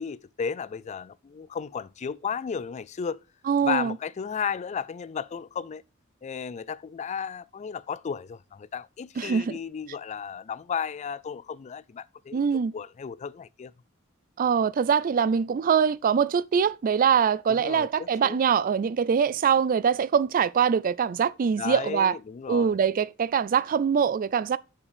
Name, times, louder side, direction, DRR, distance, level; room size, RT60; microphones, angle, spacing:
voice 1, 0.0-3.2 3.6-5.8 6.2-12.4 12.7-13.7 17.5-18.4 21.6-22.8, left 6 dB, 35° left, 0.3 m, -34 dB
voice 2, 3.5-4.0 9.2-9.6 12.3-12.7 14.4-22.2 22.5-24.6, right 7 dB, 40° right, 0.3 m, -23 dB
6.8 x 5.7 x 4.9 m
head